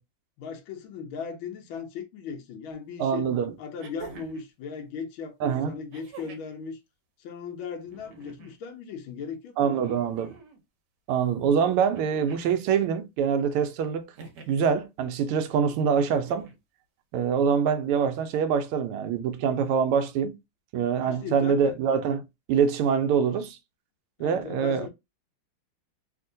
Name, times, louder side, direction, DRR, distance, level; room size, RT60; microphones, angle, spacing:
voice 1, 0.4-3.3 3.6-6.8 7.2-9.9 21.0-21.8 24.2-24.9, left 6 dB, 80° left, 1.4 m, -38 dB
sound 1, 2.7-2.8 3.8-4.5 5.9-6.6 7.8-8.6 9.8-10.6 11.9-12.6 14.1-14.7 16.0-16.6 17.9-18.0, right 5 dB, 65° right, 1.2 m, -46 dB
voice 2, 3.0-3.5 5.4-5.7 9.6-10.3 11.1-14.1 14.5-16.5 17.1-20.3 20.7-22.2 22.5-23.6 24.2-24.9, right 7 dB, 85° right, 1.5 m, -24 dB
3.5 x 2.6 x 2.6 m
omnidirectional pair, 2.4 m